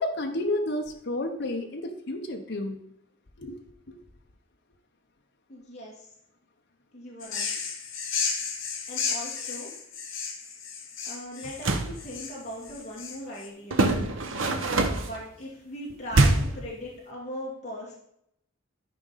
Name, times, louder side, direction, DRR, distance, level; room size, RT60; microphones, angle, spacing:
voice 1, 0.0-2.8 3.4-3.9, left 1 dB, 60° left, 2 dB, 0.9 m, -31 dB
voice 2, 5.5-6.1 6.9-7.5 8.9-9.7 11.0-13.9 15.0-17.9, equal, 35° left, -5 dB, 2.2 m, -39 dB
sound 1, 7.2-13.5, left 6 dB, 75° left, 1.6 m, -33 dB
sound 2, 11.4-12.0 13.7-15.2 16.1-16.6, right 2 dB, 75° right, 1.0 m, -23 dB
13.0 x 5.1 x 4.1 m, 0.75 s
head